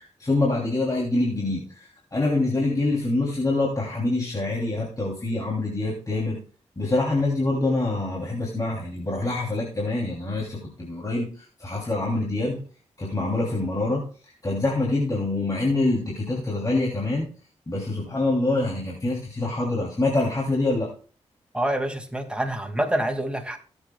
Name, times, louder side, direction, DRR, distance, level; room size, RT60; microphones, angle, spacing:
voice 1, 0.0-6.4 6.8-12.6 13.0-17.3 17.7-20.9, left 2 dB, 30° left, -3 dB, 3.1 m, -25 dB
voice 2, 21.5-23.6, right 1 dB, 10° right, 4 dB, 2.3 m, -26 dB
18.0 x 8.2 x 2.3 m, 0.40 s
cardioid pair, 50°, 12 cm